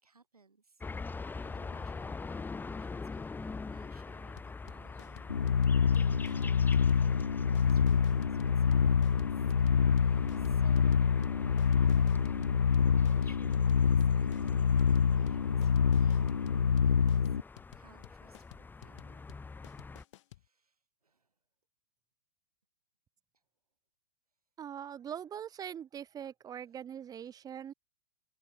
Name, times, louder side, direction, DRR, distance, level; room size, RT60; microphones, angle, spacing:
voice 1, 0.0-9.5 9.8-12.3 12.7-17.4 17.7-19.2 20.1-21.3 23.3-23.4 26.7-26.8 27.3-27.4, right 4 dB, 85° right, 6.5 m, -62 dB
sound 1, 0.8-20.0, left 4 dB, 10° left, 2.9 m, -44 dB
sound 2, 4.4-20.5, left 15 dB, 55° left, 4.5 m, -54 dB
sound 3, 5.3-17.4, left 7 dB, 90° left, 0.5 m, -26 dB
voice 2, 24.6-27.7, right 9 dB, 20° right, 1.6 m, -42 dB
figure-of-eight pair, 110°, 19 cm